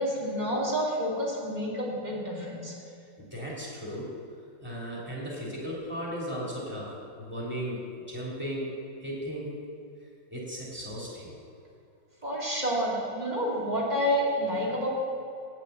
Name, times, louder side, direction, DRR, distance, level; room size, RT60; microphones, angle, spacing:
voice 1, 0.0-2.7 12.2-14.9, equal, 20° right, -4 dB, 2.3 m, -29 dB
voice 2, 3.2-4.1 4.6-8.7 9.0-9.5 10.3-11.3, equal, 5° right, -5 dB, 2.8 m, -36 dB
8.7 x 7.6 x 8.1 m, 2.6 s
omnidirectional pair, 2.0 m